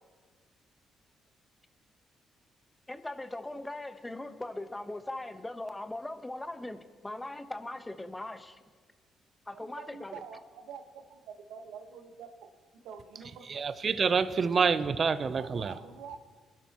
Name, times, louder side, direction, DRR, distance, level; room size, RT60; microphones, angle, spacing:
voice 1, 2.9-8.6 9.5-10.2, left 2 dB, 15° left, 1.1 m, -40 dB
voice 2, 9.5-12.3 12.8-13.6 15.4-16.4, right 6 dB, 80° right, 1.3 m, -46 dB
voice 3, 13.5-15.7, right 5 dB, 50° right, 0.6 m, -27 dB
24.0 x 12.0 x 3.0 m
supercardioid pair, 60°, 0 cm